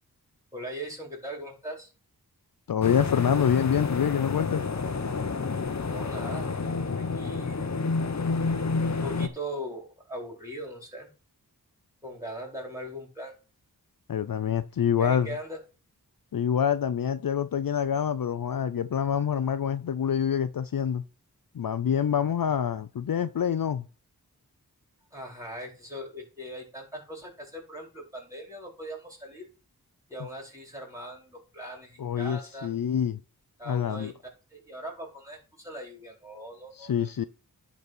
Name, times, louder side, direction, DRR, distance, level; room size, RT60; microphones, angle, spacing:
voice 1, 0.5-1.9 5.8-6.5 7.0-7.8 8.9-11.1 12.0-13.3 15.0-15.6 25.1-29.5 30.1-32.7 33.6-34.1 34.5-37.1, equal, 10° right, 4.7 m, -40 dB
voice 2, 2.7-4.6 14.1-15.3 16.3-21.0 21.5-23.8 32.0-33.2 33.7-34.1 36.8-37.2, left 8 dB, 65° left, 0.6 m, -26 dB
sound 1, 2.8-9.3, left 4 dB, 45° left, 1.0 m, -29 dB
11.0 x 4.1 x 6.1 m
cardioid pair, 40°, 38 cm